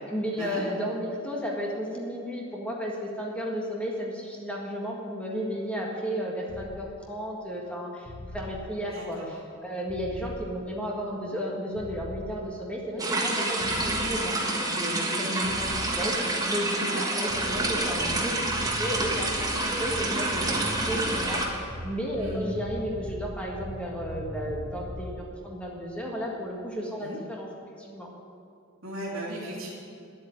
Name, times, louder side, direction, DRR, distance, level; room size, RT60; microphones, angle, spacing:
voice 1, 0.1-9.4 9.6-14.4 14.7-15.3 15.6-16.8 17.1-27.5 27.8-28.1, equal, 5° left, -2 dB, 1.7 m, -33 dB
sound 1, 6.5-6.7 8.0-8.5 9.9-10.4 11.7-12.3 13.6-14.1 15.4-15.9 17.3-25.2, equal, 50° left, 2.1 m, -39 dB
voice 2, 8.9-9.3 15.2-15.5 16.8-17.0 22.2-22.4 27.0-27.2 28.8-29.7, equal, 75° right, -8 dB, 2.6 m, -36 dB
sound 2, 13.0-21.5, right 2 dB, 20° right, 1.6 m, -28 dB
10.5 x 8.4 x 9.3 m, 2.5 s
head